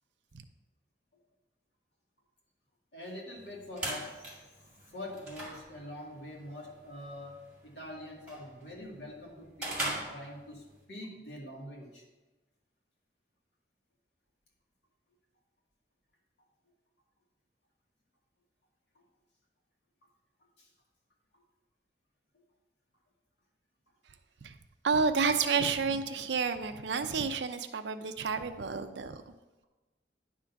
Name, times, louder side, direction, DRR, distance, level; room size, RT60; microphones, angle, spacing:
voice 1, 2.9-4.3 4.9-10.6 10.9-12.0, left 1 dB, 70° left, -2 dB, 2.0 m, -44 dB
sound 1, 3.4-10.8, right 1 dB, 5° right, 2.1 m, -42 dB
voice 2, 24.8-29.3, right 5 dB, 85° right, 9 dB, 0.6 m, -30 dB
10.0 x 3.8 x 5.8 m, 1.1 s
head